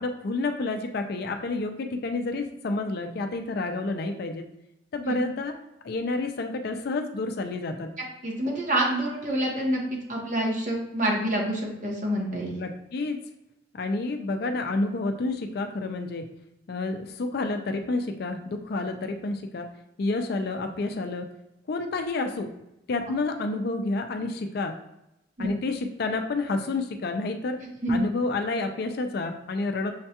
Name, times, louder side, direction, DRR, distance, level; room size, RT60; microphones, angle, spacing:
voice 1, 0.0-4.4 4.9-5.5 5.8-7.9 12.6-13.2 13.7-16.3 16.7-19.7 20.0-21.3 21.7-22.5 22.9-24.8 25.4-27.6 27.9-29.9, left 3 dB, 55° left, 5 dB, 0.4 m, -29 dB
voice 2, 8.2-12.6 25.4-25.5 27.8-28.0, right 1 dB, 40° right, -1 dB, 0.9 m, -27 dB
6.4 x 2.2 x 2.8 m, 0.86 s
head